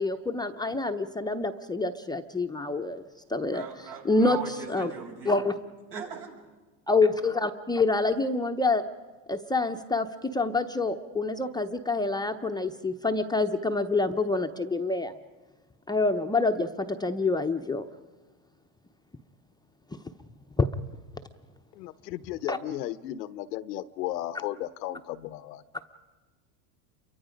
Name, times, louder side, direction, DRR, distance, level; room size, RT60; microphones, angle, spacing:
voice 1, 0.0-3.0 3.3-3.7 4.0-4.4 4.7-4.9 5.3-5.5 6.9-8.8 9.3-15.1 15.9-17.9 20.6-20.7 22.5-22.6, left 3 dB, 10° left, 5 dB, 0.6 m, -27 dB
voice 2, 3.5-5.4 5.9-6.3, right 6 dB, 80° right, 1 dB, 6.2 m, -39 dB
voice 3, 21.8-25.6, left 13 dB, 90° left, 14 dB, 0.9 m, -35 dB
28.5 x 23.5 x 5.1 m, 1.3 s
supercardioid pair, 115°, 47 cm